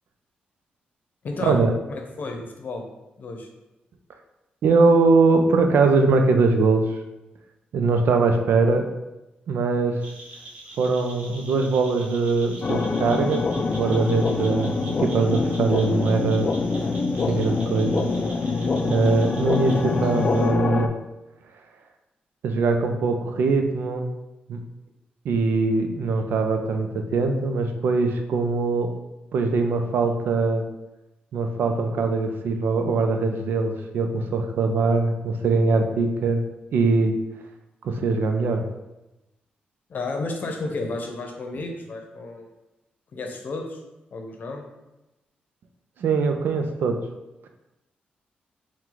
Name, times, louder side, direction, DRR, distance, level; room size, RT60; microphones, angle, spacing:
voice 1, 1.2-1.6 1.9-2.8 3.2-3.5 39.9-42.5 43.1-43.8 44.1-44.6, left 3 dB, 55° left, 3 dB, 0.7 m, -32 dB
voice 2, 4.6-6.9 7.7-8.9 9.5-10.0 10.8-13.4 13.7-16.5 17.2-18.1 18.9-20.9 22.4-24.1 24.5-24.6 25.2-28.9 29.3-30.6 31.3-36.4 36.7-37.1 37.8-38.6 46.0-47.0, right 4 dB, 75° right, 5 dB, 0.5 m, -22 dB
sound 1, 10.0-20.5, right 1 dB, 40° right, 1.1 m, -44 dB
sound 2, 12.6-20.9, left 4 dB, 40° left, 0.3 m, -25 dB
4.4 x 2.2 x 3.9 m, 0.98 s
cardioid pair, 80°, 3 cm